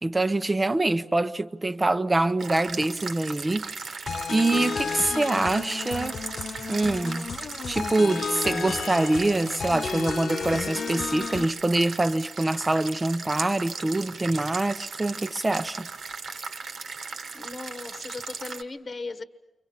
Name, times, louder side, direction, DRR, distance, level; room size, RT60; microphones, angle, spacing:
voice 1, 0.0-3.8 4.3-6.2 6.7-7.3 7.7-15.9, right 2 dB, 20° right, 0.9 m, -25 dB
sound 1, 2.4-18.6, right 4 dB, 65° right, 1.5 m, -37 dB
sound 2, 4.1-11.4, left 5 dB, 60° left, 0.8 m, -32 dB
voice 2, 17.3-19.2, left 3 dB, 40° left, 1.2 m, -37 dB
29.0 x 24.5 x 5.8 m
wide cardioid pair, 110°, 0 cm